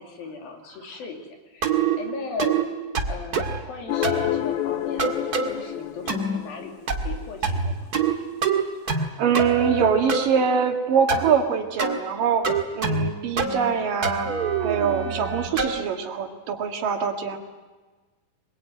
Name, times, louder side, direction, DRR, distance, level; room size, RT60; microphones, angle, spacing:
voice 1, 0.0-2.6 3.0-7.9, left 4 dB, 85° left, 3 dB, 4.7 m, -37 dB
sound 1, 1.6-2.0 2.4-2.6 2.9-3.6 4.0-4.3 5.0-5.5 6.1-6.4 6.9-7.2 7.4-8.1 8.4-9.1 9.3-10.3 11.1-11.3 11.8-12.0 12.4-13.1 13.4-13.7 14.0-15.8, right 5 dB, 35° right, 1.9 m, -25 dB
sound 2, 3.9-7.2, left 12 dB, 65° left, 2.5 m, -29 dB
voice 2, 8.9-12.4 12.8-14.3 14.6-17.4, right 6 dB, 70° right, 4 dB, 3.6 m, -23 dB
26.0 x 21.5 x 9.3 m, 1.3 s
omnidirectional pair, 4.1 m